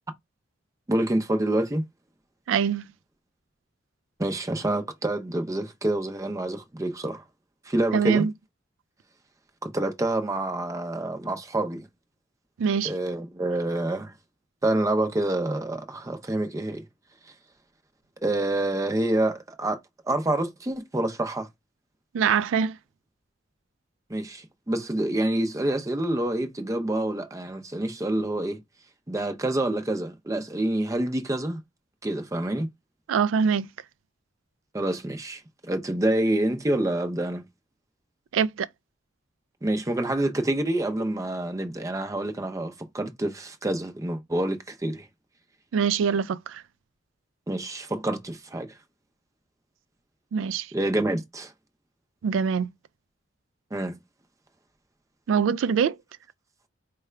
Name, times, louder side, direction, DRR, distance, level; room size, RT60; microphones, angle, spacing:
voice 1, 0.9-1.8 4.2-7.2 7.7-8.3 9.6-11.9 12.8-14.1 14.6-16.9 18.2-19.8 20.1-21.5 24.1-28.6 29.1-31.6 32.0-32.7 34.7-37.4 39.6-45.1 47.5-48.7 50.7-51.5 53.7-54.0, right 1 dB, 15° right, 0.5 m, -27 dB
voice 2, 2.5-2.9 7.9-8.3 12.6-12.9 22.1-22.8 33.1-33.7 38.3-38.7 45.7-46.6 50.3-50.7 52.2-52.7 55.3-56.0, right 6 dB, 80° right, 0.3 m, -23 dB
4.6 x 2.2 x 3.2 m
head